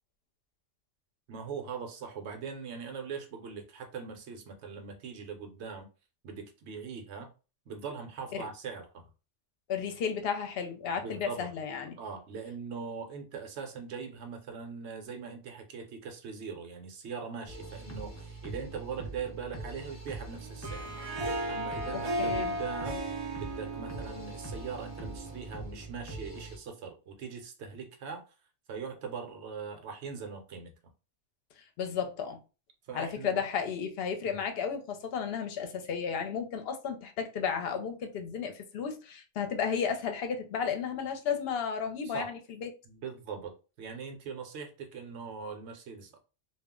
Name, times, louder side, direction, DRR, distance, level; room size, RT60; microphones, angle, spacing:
voice 1, 1.3-5.9 6.2-7.3 7.7-9.1 11.0-11.5 12.0-20.9 21.5-23.0 23.4-28.2 28.7-30.7 32.9-33.4 34.3-34.4 42.0-42.3 42.9-46.2, right 5 dB, 75° right, 0.9 m, -41 dB
voice 2, 9.7-12.0 22.2-22.5 31.8-32.4 32.9-42.7, left 7 dB, 65° left, 0.7 m, -33 dB
sound 1, 17.5-26.6, right 2 dB, 25° left, 0.4 m, -43 dB
Harp, 20.4-25.6, right 1 dB, 55° right, 0.4 m, -36 dB
2.3 x 2.0 x 3.5 m
omnidirectional pair, 1.2 m